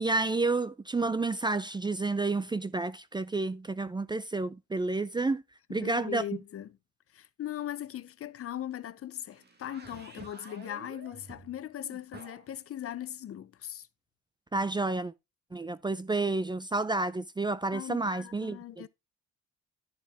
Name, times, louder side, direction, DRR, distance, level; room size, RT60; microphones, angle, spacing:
voice 1, 0.0-5.4 5.7-6.2 14.5-15.1 15.5-18.8, right 3 dB, 15° right, 0.4 m, -30 dB
voice 2, 5.7-6.8 7.1-13.9 17.7-18.9, left 11 dB, 50° left, 0.6 m, -39 dB
sound 1, 9.3-12.5, right 3 dB, 35° right, 1.5 m, -50 dB
11.0 x 4.3 x 3.4 m
cardioid pair, 90°, 30 cm